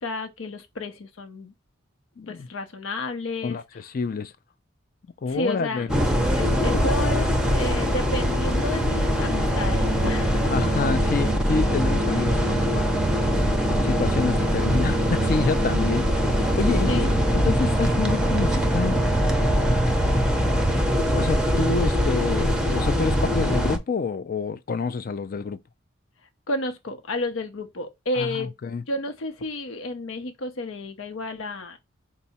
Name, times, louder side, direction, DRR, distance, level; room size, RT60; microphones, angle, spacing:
voice 1, 0.0-1.5 2.3-3.6 5.3-5.9 6.3-10.4 16.8-17.1 26.5-28.5 28.9-31.8, left 2 dB, 90° left, 0.7 m, -31 dB
voice 2, 2.2-2.5 3.4-3.6 3.9-4.3 5.2-5.9 10.5-13.0 13.8-16.1 16.4-17.0 17.3-19.0 21.1-25.6 28.2-28.8, left 4 dB, 45° left, 0.4 m, -28 dB
sound 1, 5.9-23.8, equal, 5° right, 0.6 m, -22 dB
4.6 x 2.0 x 4.1 m
head